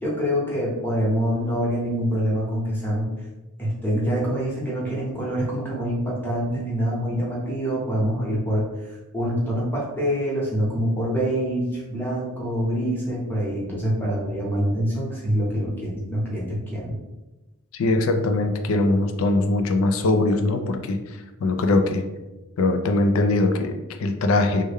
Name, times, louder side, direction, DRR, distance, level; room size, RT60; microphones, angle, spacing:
voice 1, 0.0-3.1 3.6-17.0, equal, 10° left, -6 dB, 0.9 m, -25 dB
voice 2, 17.7-21.0 21.4-22.0 22.6-24.6, left 2 dB, 65° left, 7 dB, 0.4 m, -21 dB
3.2 x 2.2 x 3.4 m, 1.1 s
head